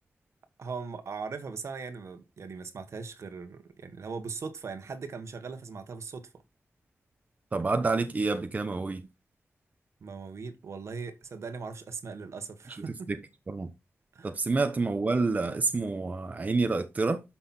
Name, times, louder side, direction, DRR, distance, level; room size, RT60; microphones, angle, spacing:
voice 1, 0.6-6.3 10.0-13.1 14.1-14.3, right 5 dB, 75° right, 1.6 m, -39 dB
voice 2, 7.5-9.1 12.7-13.2 13.5-13.7 14.2-17.2, right 3 dB, 30° right, 0.9 m, -28 dB
12.0 x 6.0 x 4.4 m
wide cardioid pair, 170°, 5 cm